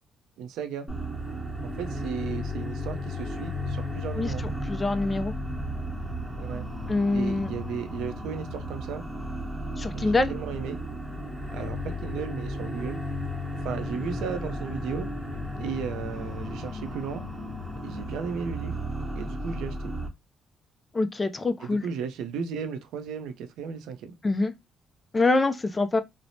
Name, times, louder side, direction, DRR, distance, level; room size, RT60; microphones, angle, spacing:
voice 1, 0.4-0.9 1.6-4.4 6.4-6.7 7.1-9.0 9.9-10.8 11.5-13.0 13.6-17.2 17.8-18.8 19.2-19.9 21.6-24.1, right 6 dB, 90° right, 0.5 m, -35 dB
sound 1, 0.9-20.1, left 1 dB, 5° right, 0.9 m, -34 dB
voice 2, 4.7-5.3 6.9-7.5 9.8-10.3 20.9-21.8 24.2-24.5 25.1-26.0, left 3 dB, 25° left, 0.4 m, -25 dB
3.1 x 2.0 x 2.6 m
cardioid pair, 90°, 0 cm